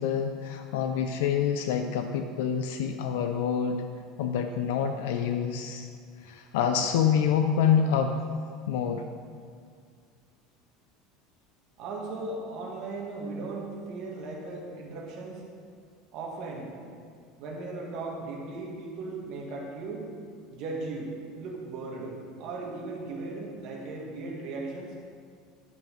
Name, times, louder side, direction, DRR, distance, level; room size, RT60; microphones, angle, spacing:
voice 1, 0.0-3.8 4.2-5.9 6.2-8.1 8.7-9.0, left 7 dB, 85° left, 5 dB, 0.5 m, -27 dB
voice 2, 11.8-15.4 16.1-16.7 17.4-20.1 20.5-24.9, right 3 dB, 45° right, -1 dB, 1.7 m, -37 dB
10.5 x 6.0 x 5.2 m, 2.1 s
cardioid pair, 180°, 0 cm